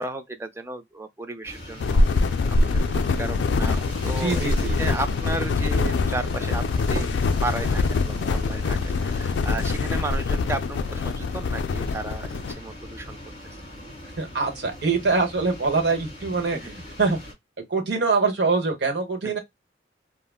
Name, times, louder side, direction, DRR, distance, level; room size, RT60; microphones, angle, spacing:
voice 1, 0.0-7.1 7.4-13.2 16.5-16.7 19.2-19.3, right 2 dB, 15° right, 0.4 m, -34 dB
sound 1, 1.4-17.3, left 1 dB, 30° left, 1.8 m, -40 dB
sound 2, 1.8-12.5, left 3 dB, 75° left, 0.3 m, -24 dB
voice 2, 4.2-5.0 14.2-17.2 17.7-19.4, right 4 dB, 65° right, 1.0 m, -24 dB
3.5 x 2.1 x 2.2 m
head